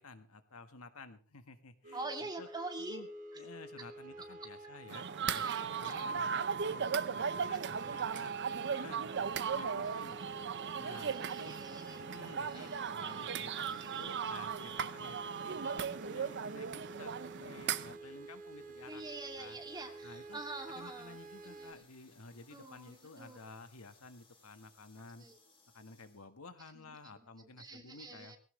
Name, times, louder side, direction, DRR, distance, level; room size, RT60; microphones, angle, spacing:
voice 1, 0.0-2.5 2.8-3.1 3.3-10.2 10.8-11.6 12.0-19.0 19.4-19.6 20.0-20.4 20.7-25.3 25.7-28.3, left 3 dB, 80° left, 9 dB, 1.7 m, -53 dB
sound 1, 1.8-21.7, right 2 dB, 40° right, 1.3 m, -51 dB
voice 2, 1.9-3.0 5.3-6.1 7.5-8.0 10.9-12.0 12.5-13.4 13.7-14.1 18.9-21.2 21.4-21.8 22.5-23.4 25.2-25.4 26.7-27.3 27.6-28.4, right 2 dB, 20° right, 3 dB, 2.6 m, -46 dB
sound 2, 4.9-18.0, right 7 dB, 55° right, 0.7 m, -37 dB
sound 3, 18.6-26.3, left 3 dB, 25° left, 4.4 m, -67 dB
18.5 x 17.0 x 3.3 m, 0.35 s
head